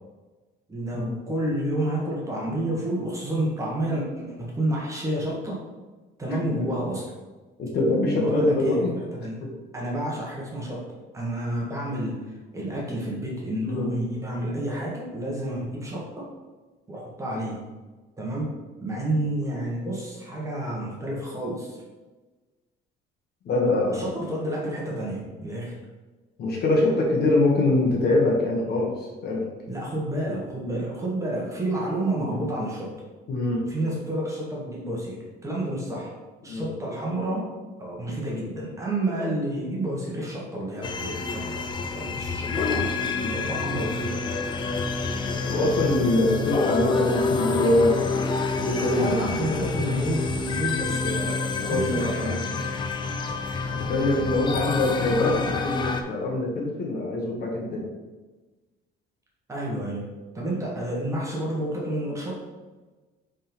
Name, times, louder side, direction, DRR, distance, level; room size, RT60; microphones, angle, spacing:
voice 1, 0.7-5.6 6.2-7.1 8.2-9.5 9.7-16.3 16.9-17.6 18.2-18.5 18.8-21.8 23.9-25.8 29.7-32.9 33.7-36.1 36.4-37.5 37.8-41.6 41.9-42.9 43.3-44.3 49.0-52.5 59.5-60.1 60.3-62.4, right 1 dB, 15° right, -4 dB, 1.2 m, -30 dB
voice 2, 7.6-8.9 13.6-13.9 23.4-24.1 26.4-28.9 29.2-29.5 32.2-32.5 33.3-33.6 36.5-36.7 43.0-43.3 45.5-48.1 48.6-49.2 50.9-51.2 51.7-52.4 53.8-57.8, left 2 dB, 55° left, -1 dB, 1.4 m, -24 dB
sound 1, 40.8-56.0, left 4 dB, 25° left, 0.4 m, -28 dB
5.4 x 3.8 x 5.2 m, 1.2 s
cardioid pair, 170°, 20 cm